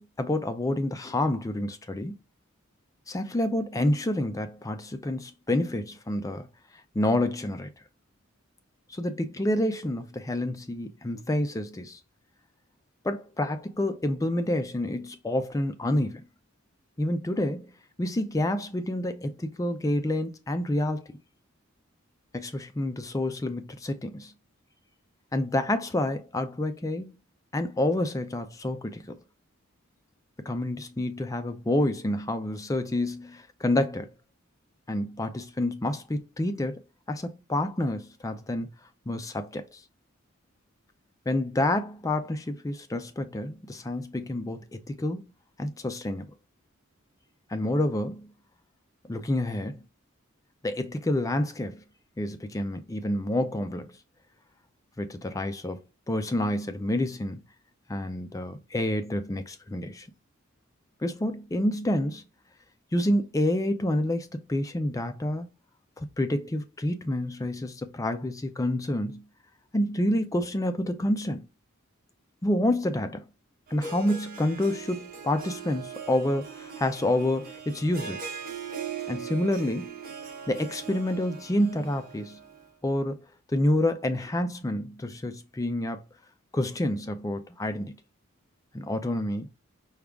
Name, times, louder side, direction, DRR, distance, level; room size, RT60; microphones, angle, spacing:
voice 1, 0.0-2.1 3.1-6.5 7.0-7.7 8.9-12.0 13.0-16.2 17.0-17.7 18.0-21.2 22.3-24.3 25.3-27.1 27.5-29.2 30.4-34.1 34.9-36.8 37.1-38.7 39.1-39.8 41.3-45.2 45.6-46.3 47.5-48.3 49.1-49.8 50.6-51.8 52.2-54.0 55.0-55.8 56.1-57.4 57.9-60.1 61.0-62.2 62.9-65.5 66.0-69.2 69.7-71.5 72.4-73.2 73.7-78.3 79.1-79.9 80.5-82.4 82.8-86.0 86.5-88.0 88.7-89.5, left 1 dB, 15° left, 0.4 m, -28 dB
Harp, 73.7-82.7, right 7 dB, 45° right, 0.8 m, -40 dB
5.0 x 2.3 x 3.4 m
head